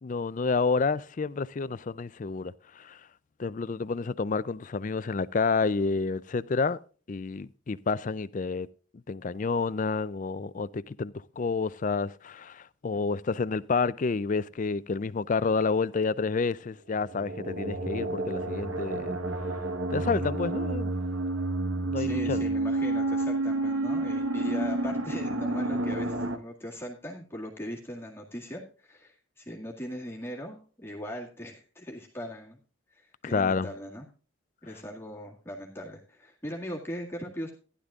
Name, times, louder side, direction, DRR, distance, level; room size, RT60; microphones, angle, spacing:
voice 1, 0.0-3.0 3.4-6.8 7.1-8.7 9.1-19.2 19.9-20.9 21.9-22.4 33.2-33.7, left 4 dB, 40° left, 0.4 m, -29 dB
sound 1, 17.0-26.4, right 2 dB, 75° right, 1.3 m, -30 dB
voice 2, 22.0-32.6 33.0-34.1 34.6-37.5, equal, 10° left, 2.0 m, -39 dB
15.5 x 11.5 x 2.4 m
head